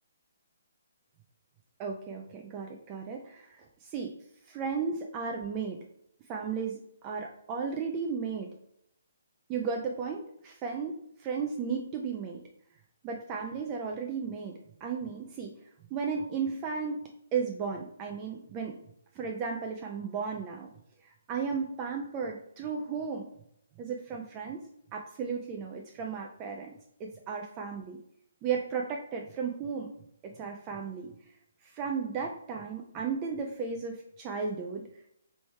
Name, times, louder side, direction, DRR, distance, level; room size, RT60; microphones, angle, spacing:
voice 1, 1.8-4.1 4.5-5.8 6.3-8.5 9.5-12.4 13.0-15.5 15.9-18.8 19.1-20.7 21.0-23.3 23.8-24.6 24.9-26.7 27.0-28.0 28.4-29.9 30.3-31.1 31.6-34.8, right 5 dB, 25° right, 1 dB, 0.5 m, -34 dB
3.2 x 3.0 x 4.5 m, 0.73 s
figure-of-eight pair, 135°, 0 cm